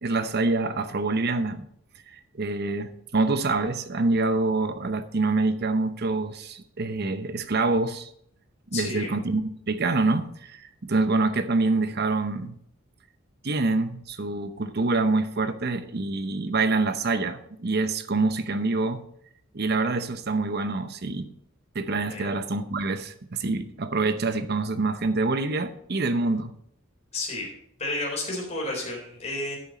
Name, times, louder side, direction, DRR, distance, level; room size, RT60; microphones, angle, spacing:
voice 1, 0.0-1.7 2.3-8.1 8.7-12.6 13.4-19.0 19.5-21.3 21.7-26.5, right 3 dB, 50° right, 11 dB, 0.8 m, -26 dB
voice 2, 8.7-9.1 22.1-22.3 27.1-27.5 27.8-29.6, left 2 dB, 35° left, -2 dB, 3.7 m, -31 dB
9.6 x 7.3 x 5.1 m, 0.70 s
head